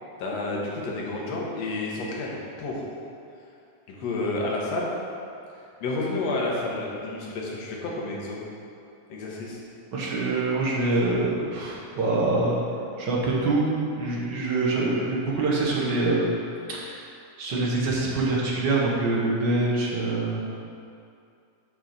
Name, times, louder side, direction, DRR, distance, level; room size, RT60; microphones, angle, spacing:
voice 1, 0.2-2.8 3.9-4.9 5.8-8.4 9.1-9.6, left 2 dB, 70° left, -3 dB, 2.2 m, -30 dB
voice 2, 9.9-12.6 13.0-16.4 16.7-17.0 17.4-20.4, right 2 dB, 55° right, -4 dB, 1.3 m, -25 dB
6.1 x 6.0 x 5.7 m, 2.5 s
omnidirectional pair, 3.3 m